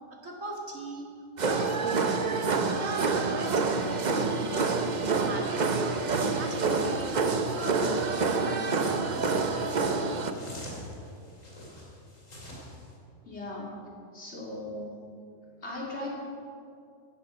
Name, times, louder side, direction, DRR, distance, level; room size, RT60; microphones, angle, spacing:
voice 1, 0.1-1.1 1.4-2.3 2.8-4.7 5.2-7.8 8.1-10.2, right 1 dB, 85° right, 0 dB, 2.6 m, -39 dB
sound 1, 1.4-10.3, right 4 dB, 40° right, 0.8 m, -27 dB
sound 2, 4.8-12.9, left 1 dB, 80° left, 3.7 m, -44 dB
voice 2, 13.2-13.7 14.1-14.9 15.6-16.1, left 2 dB, 55° left, -3 dB, 3.2 m, -37 dB
15.0 x 11.5 x 5.3 m, 2.4 s
omnidirectional pair, 1.3 m